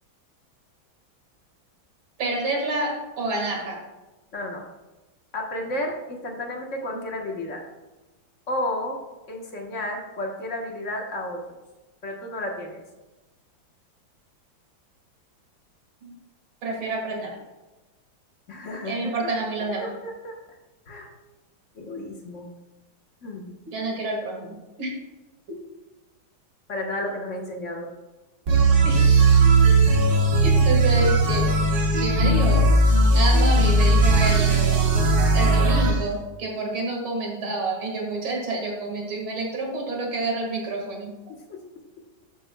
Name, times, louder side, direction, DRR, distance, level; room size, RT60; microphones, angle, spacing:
voice 1, 2.2-3.8 16.0-16.2 16.6-17.4 18.9-19.9 23.7-24.9 28.8-29.4 30.4-31.5 32.0-32.7 33.1-34.8 35.3-41.1, right 2 dB, 75° right, 0 dB, 2.7 m, -28 dB
voice 2, 4.3-4.6 5.3-7.6 8.5-9.0 9.3-11.6 12.0-12.8 18.5-19.3 19.6-20.4 20.9-21.1 21.7-22.5 23.2-23.5 26.7-27.9 29.9-30.0 41.5-41.6, left 1 dB, 45° left, 0 dB, 1.3 m, -32 dB
sound 1, 28.5-36.0, right 2 dB, 55° right, 1.8 m, -18 dB
12.5 x 7.8 x 2.3 m, 1.1 s
omnidirectional pair, 2.2 m